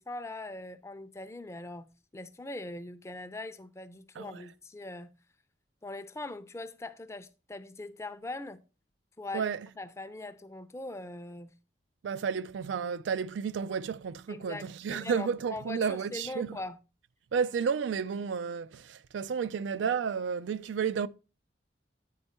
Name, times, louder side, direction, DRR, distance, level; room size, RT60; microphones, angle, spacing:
voice 1, 0.0-1.9 2.1-5.1 5.8-8.6 9.2-9.5 9.8-11.5 14.3-16.8, left 2 dB, 15° left, 0.5 m, -41 dB
voice 2, 9.3-9.7 12.0-16.6 17.3-21.1, right 6 dB, 85° right, 0.4 m, -32 dB
8.4 x 4.4 x 4.3 m
head